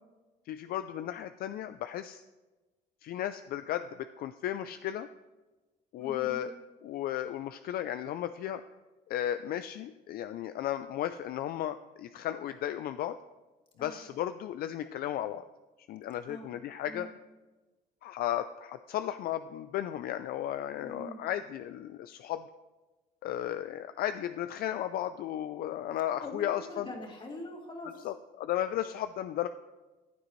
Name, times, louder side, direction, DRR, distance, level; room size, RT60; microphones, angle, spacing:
voice 1, 0.5-2.2 3.0-5.1 5.9-6.5 6.8-8.6 9.1-13.2 13.8-15.4 15.9-17.1 18.0-22.5 23.2-26.9 28.0-29.5, left 11 dB, 65° left, 11 dB, 0.4 m, -34 dB
voice 2, 6.0-6.5 13.8-14.0 16.3-16.5 16.9-17.2 20.8-21.2 26.2-28.1, left 1 dB, 30° left, 0 dB, 2.5 m, -43 dB
14.5 x 8.9 x 3.1 m, 1.2 s
cardioid pair, 110°, 17 cm